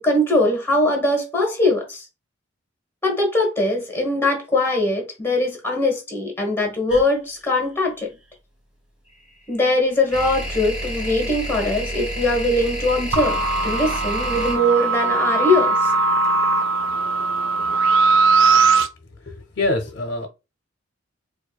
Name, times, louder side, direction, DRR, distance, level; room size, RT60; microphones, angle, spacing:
voice 1, 0.0-2.0 3.0-8.1 9.5-15.9, left 1 dB, 10° left, 1.1 m, -21 dB
sound 1, 6.9-7.0 9.1-16.1, equal, 5° right, 1.2 m, -30 dB
sound 2, 13.1-18.9, right 4 dB, 75° right, 0.4 m, -19 dB
voice 2, 19.2-20.3, left 2 dB, 55° left, 0.6 m, -25 dB
4.6 x 2.3 x 2.3 m
head